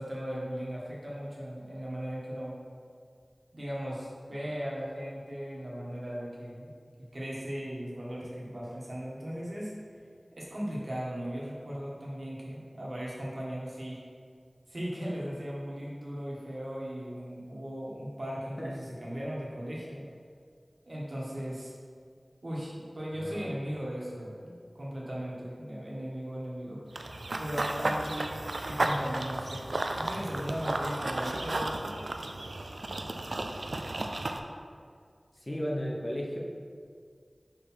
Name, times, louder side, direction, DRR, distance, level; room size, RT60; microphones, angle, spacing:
voice 1, 0.0-2.6 3.5-6.7 7.1-9.7 10.3-14.0 14.7-20.0 20.8-21.7 22.4-26.8 27.4-28.3 28.6-29.6 30.0-31.9, equal, 65° right, -5 dB, 1.6 m, -37 dB
Run / Bird vocalization bird call bird song, 27.0-34.4, right 2 dB, 80° right, 0.4 m, -33 dB
voice 2, 35.5-36.4, equal, 30° left, -3 dB, 1.0 m, -34 dB
5.0 x 4.5 x 5.7 m, 2.1 s
wide cardioid pair, 50°, 0 cm